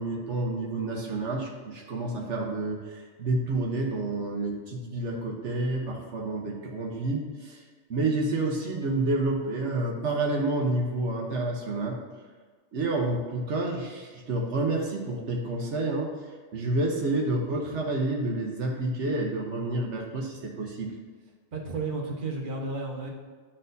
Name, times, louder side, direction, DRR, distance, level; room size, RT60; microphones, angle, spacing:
voice 1, 0.0-7.6 7.9-12.0 12.7-16.1 16.5-20.9, right 2 dB, 80° right, -1 dB, 1.2 m, -29 dB
voice 2, 21.5-23.1, right 3 dB, 50° right, -2 dB, 1.2 m, -32 dB
11.0 x 4.3 x 2.6 m, 1.5 s
omnidirectional pair, 1.2 m